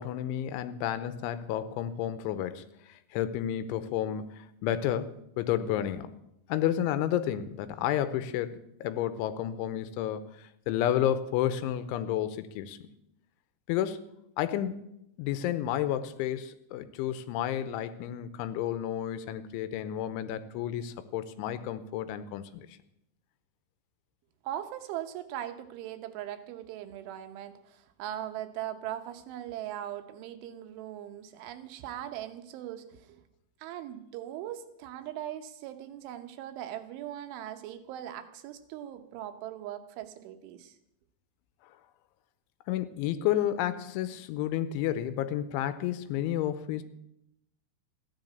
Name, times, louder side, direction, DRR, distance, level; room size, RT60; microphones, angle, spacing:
voice 1, 0.0-6.1 6.5-12.8 13.7-14.0 14.4-14.9 15.2-22.7 42.7-46.8, left 11 dB, 90° left, 13 dB, 3.2 m, -31 dB
voice 2, 24.4-33.2 33.6-40.8, right 11 dB, 85° right, 8 dB, 3.5 m, -40 dB
15.0 x 10.0 x 8.0 m, 0.81 s
omnidirectional pair, 5.4 m